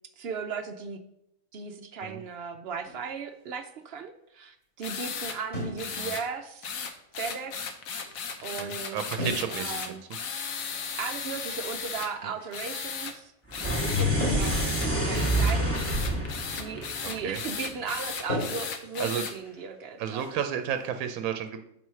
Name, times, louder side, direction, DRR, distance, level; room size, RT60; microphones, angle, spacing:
voice 1, 0.2-1.0 1.5-6.7 7.2-7.7 8.4-10.0 11.0-13.3 13.6-15.8 16.5-20.4, right 5 dB, 60° right, 8 dB, 0.7 m, -37 dB
sound 1, 2.8-3.2 5.5-6.0 6.3-6.4 7.3-7.4 7.9-8.3 9.2-9.7 10.0-10.1 10.7-13.8 14.2-16.4 16.7-17.5 17.8-18.0 18.3-20.9, left 1 dB, 60° left, 2.6 m, -39 dB
sound 2, 4.8-5.4 5.8-6.2 6.6-12.1 12.5-13.1 13.5-14.1 14.4-19.3, left 6 dB, 75° left, 1.2 m, -36 dB
voice 2, 8.6-10.0 12.2-12.3 14.6-14.7 17.0-17.4 19.0-19.2 20.0-21.6, right 9 dB, 80° right, 8 dB, 1.0 m, -32 dB
sound 3, 13.5-17.9, equal, 10° left, 1.2 m, -28 dB
6.0 x 4.7 x 5.5 m, 0.78 s
omnidirectional pair, 1.5 m